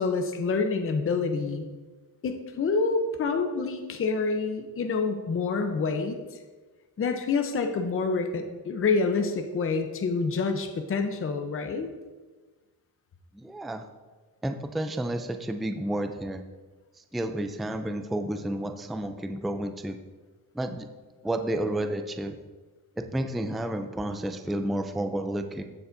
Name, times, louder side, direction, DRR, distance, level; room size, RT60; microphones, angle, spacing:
voice 1, 0.0-1.7 2.2-6.2 7.0-11.9, left 4 dB, 35° left, 5 dB, 0.8 m, -27 dB
voice 2, 13.3-13.8 14.4-16.4 16.9-20.0 20.5-20.9 21.2-22.4 23.0-25.6, right 1 dB, ahead, 6 dB, 0.4 m, -31 dB
15.0 x 6.8 x 2.6 m, 1.3 s
cardioid pair, 135°, 37 cm